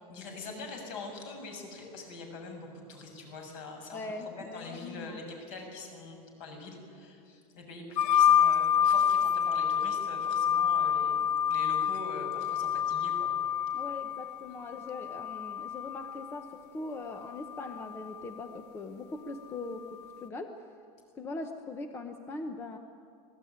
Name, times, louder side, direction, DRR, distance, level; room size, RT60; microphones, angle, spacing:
voice 1, 0.1-13.3, left 3 dB, 50° left, 2 dB, 6.8 m, -44 dB
voice 2, 3.9-5.2 13.7-20.6 21.1-22.8, left 3 dB, 10° left, 6 dB, 0.8 m, -41 dB
sound 1, 8.0-16.4 17.4-18.2, left 8 dB, 85° left, 0.7 m, -28 dB
27.0 x 19.0 x 9.4 m, 2.5 s
supercardioid pair, 175°, 20 cm